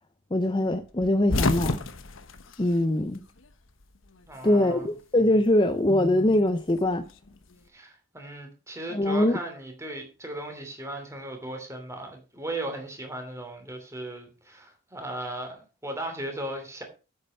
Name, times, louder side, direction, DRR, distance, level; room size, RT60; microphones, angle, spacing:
voice 1, 0.3-1.8 2.6-3.2 4.4-7.0 8.9-9.4, left 1 dB, 20° left, 0.6 m, -23 dB
sound 1, 1.0-3.5 3.8-4.9 6.1-7.5, left 3 dB, 65° left, 1.1 m, -30 dB
voice 2, 4.3-4.9 7.7-16.8, right 1 dB, 15° right, 3.0 m, -37 dB
8.6 x 8.6 x 5.5 m
head